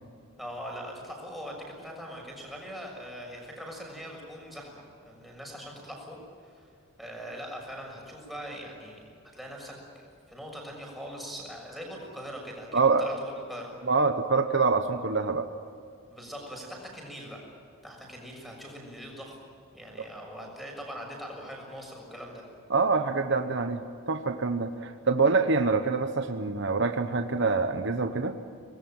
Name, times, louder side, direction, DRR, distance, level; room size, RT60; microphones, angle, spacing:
voice 1, 0.4-6.7 7.0-13.7 16.1-17.4 17.8-19.4 19.7-22.4, equal, ahead, 0 dB, 6.7 m, -42 dB
voice 2, 12.7-13.1 13.8-15.5 22.7-28.4, right 4 dB, 55° right, 7 dB, 1.1 m, -25 dB
25.0 x 21.0 x 9.2 m, 2.4 s
head